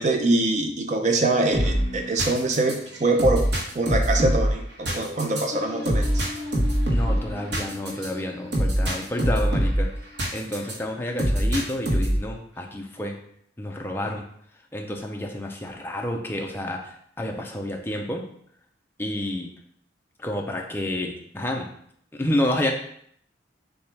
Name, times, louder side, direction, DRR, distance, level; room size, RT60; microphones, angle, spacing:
voice 1, 0.0-3.5 3.7-6.2, right 2 dB, 40° right, 4 dB, 0.5 m, -24 dB
sound 1, 1.5-10.8 11.2-12.3, equal, 70° right, 1.0 m, -24 dB
voice 2, 6.9-9.9 10.3-13.2 13.6-14.2 14.7-18.2 19.0-19.5 20.2-21.7 22.1-22.7, left 1 dB, 10° left, 1 dB, 0.5 m, -29 dB
6.8 x 2.3 x 3.3 m, 0.67 s
head